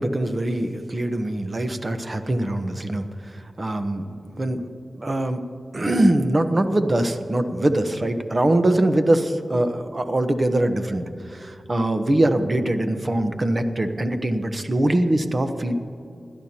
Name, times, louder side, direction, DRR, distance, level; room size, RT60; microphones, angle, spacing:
voice 1, 0.0-4.7 4.9-5.4 5.7-15.7, right 1 dB, 40° right, 8 dB, 1.0 m, -23 dB
20.5 x 12.0 x 2.9 m, 2.5 s
cardioid pair, 50°, 0 cm